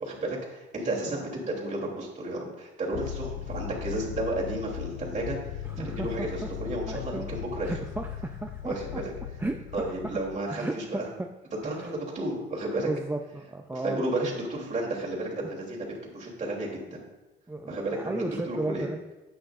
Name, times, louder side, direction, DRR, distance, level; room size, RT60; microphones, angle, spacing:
voice 1, 0.0-7.7 8.6-9.1 9.7-11.1 11.6-12.9 13.7-17.0 17.7-18.9, right 2 dB, 35° right, -3 dB, 3.0 m, -32 dB
sound 1, 2.9-10.4, left 11 dB, 85° left, 0.4 m, -38 dB
voice 2, 5.6-6.5 6.9-7.3 7.6-9.0 9.4-9.6 10.5-11.3 11.6-11.9 12.8-14.0 17.5-19.0, right 2 dB, 10° right, 3 dB, 0.5 m, -34 dB
10.0 x 8.9 x 2.5 m, 1.1 s
cardioid pair, 90°, 20 cm